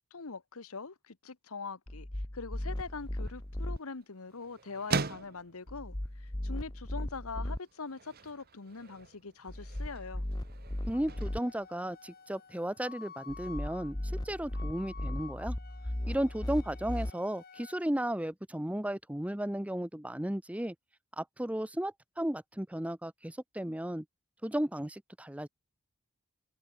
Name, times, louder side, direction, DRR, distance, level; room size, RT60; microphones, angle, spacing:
voice 1, 0.0-2.1 2.3-10.2, left 4 dB, 75° left, 1.2 m, -43 dB
sound 1, 1.9-3.8 5.7-7.6 9.5-11.4 13.3-17.1, left 1 dB, 20° left, 1.0 m, -37 dB
sound 2, 2.9-12.6, right 4 dB, 45° right, 1.2 m, -42 dB
Wind instrument woodwind instrument, 10.9-17.8, left 6 dB, 45° left, 3.4 m, -52 dB
voice 2, 10.9-15.6 16.1-20.7 21.2-24.0 24.4-25.5, right 1 dB, 5° right, 0.7 m, -34 dB
head